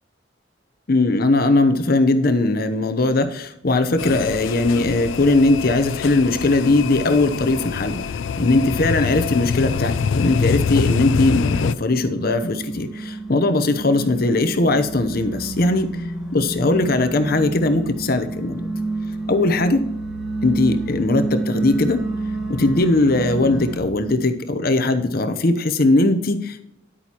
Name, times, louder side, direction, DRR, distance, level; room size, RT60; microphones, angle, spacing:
voice 1, 0.9-8.0 8.4-16.0 16.3-18.7 19.3-19.9 20.4-22.0 22.5-26.6, left 2 dB, 50° left, 9 dB, 0.8 m, -19 dB
sound 1, 4.0-11.7, left 6 dB, 80° left, 0.4 m, -25 dB
sound 2, 10.7-23.8, right 2 dB, ahead, 1.4 m, -29 dB
10.0 x 8.7 x 3.0 m, 0.80 s
head